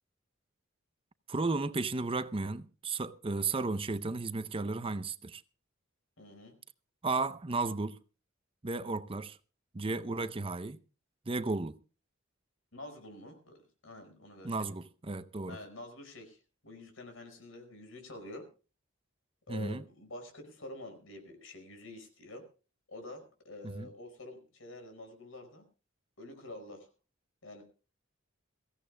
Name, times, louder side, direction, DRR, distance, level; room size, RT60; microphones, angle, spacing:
voice 1, 1.3-5.4 7.0-8.0 8.6-9.4 9.7-10.8 11.3-11.8 14.4-15.6 19.5-19.8 23.8-23.9, right 3 dB, 25° right, 0.6 m, -34 dB
voice 2, 6.2-6.6 9.9-10.0 12.7-14.6 15.5-18.5 19.5-22.4 22.9-25.6 26.2-26.9 27.4-27.6, left 1 dB, 75° left, 5.4 m, -48 dB
23.5 x 16.0 x 2.2 m
head